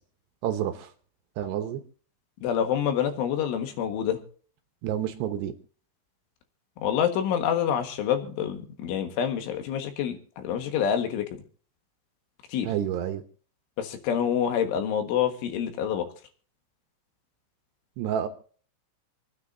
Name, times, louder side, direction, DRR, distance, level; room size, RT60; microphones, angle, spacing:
voice 1, 0.4-0.9 1.4-1.8 4.8-5.5 12.6-13.2 18.0-18.3, right 10 dB, 75° right, 7 dB, 3.0 m, -29 dB
voice 2, 2.4-4.2 6.8-11.3 12.5-12.7 13.8-16.1, left 9 dB, 90° left, 6 dB, 4.1 m, -27 dB
27.0 x 9.5 x 2.7 m, 0.43 s
omnidirectional pair, 5.4 m